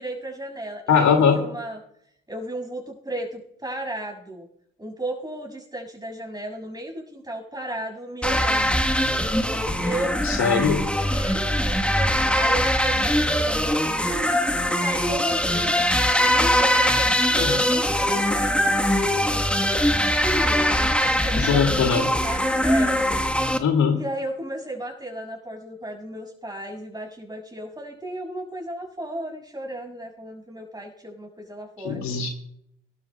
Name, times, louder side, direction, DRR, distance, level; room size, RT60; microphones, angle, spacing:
voice 1, 0.0-1.8 2.3-4.5 4.8-8.8 9.8-10.2 11.1-14.2 14.7-15.8 16.2-18.7 19.3-19.6 20.1-23.0 23.9-32.0, right 1 dB, 15° right, 1 dB, 6.9 m, -34 dB
voice 2, 0.9-1.4 10.2-10.8 17.4-17.6 21.4-22.0 23.6-24.0 31.8-32.3, left 6 dB, 65° left, 4 dB, 2.4 m, -21 dB
sound 1, 8.2-23.6, equal, 5° left, 1.3 m, -22 dB
25.0 x 12.5 x 2.3 m, 0.73 s
hypercardioid pair, 55°, 30 cm